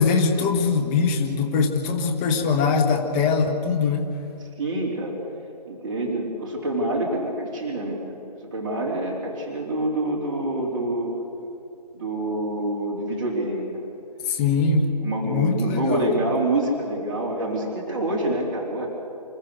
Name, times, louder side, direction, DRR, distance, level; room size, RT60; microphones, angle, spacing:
voice 1, 0.0-4.1 14.2-14.9 15.2-16.1, left 4 dB, 15° left, 3 dB, 1.3 m, -22 dB
voice 2, 4.6-5.2 5.7-8.0 8.5-11.1 11.9-13.8 14.5-14.6 15.0-18.9, right 1 dB, 30° right, -2 dB, 3.5 m, -26 dB
28.0 x 14.0 x 6.6 m, 2.9 s
figure-of-eight pair, 160°, 21 cm